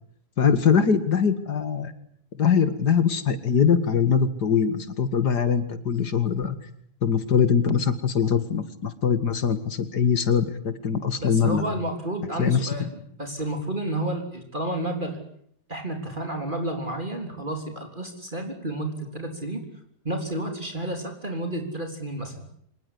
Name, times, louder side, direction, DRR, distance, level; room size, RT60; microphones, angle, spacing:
voice 1, 0.4-1.9 2.4-6.6 7.0-11.6 12.4-12.9, left 7 dB, 90° left, 12 dB, 2.7 m, -22 dB
voice 2, 11.2-12.8 13.2-15.2 15.7-19.6 20.0-22.5, right 1 dB, 30° right, 4 dB, 3.9 m, -31 dB
26.0 x 20.0 x 10.0 m, 0.66 s
omnidirectional pair, 1.7 m